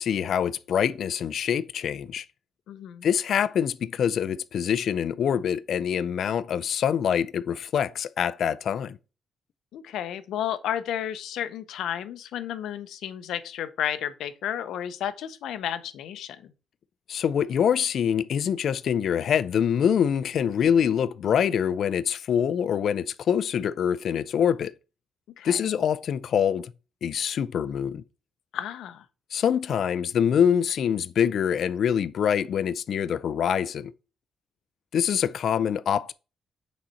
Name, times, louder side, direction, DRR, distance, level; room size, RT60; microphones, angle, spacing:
voice 1, 0.0-2.3 3.0-9.0 17.1-24.7 25.4-26.7 27.0-28.0 29.3-33.9 34.9-36.1, left 8 dB, 50° left, 0.3 m, -25 dB
voice 2, 2.7-3.1 9.7-16.5 25.4-25.6 28.5-29.0, left 10 dB, 90° left, 0.6 m, -32 dB
6.2 x 4.0 x 4.3 m
cardioid pair, 175°, 0 cm